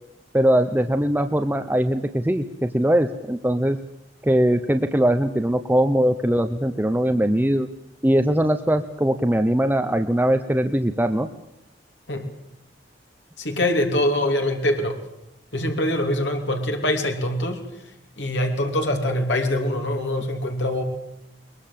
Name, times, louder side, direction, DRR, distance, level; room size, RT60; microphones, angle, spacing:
voice 1, 0.3-3.8 4.2-7.7 8.0-11.3, right 1 dB, 10° right, 7 dB, 0.8 m, -21 dB
voice 2, 13.4-15.0 15.5-17.6 18.2-20.8, left 1 dB, 80° left, 3 dB, 3.2 m, -23 dB
22.0 x 21.5 x 7.6 m, 0.85 s
head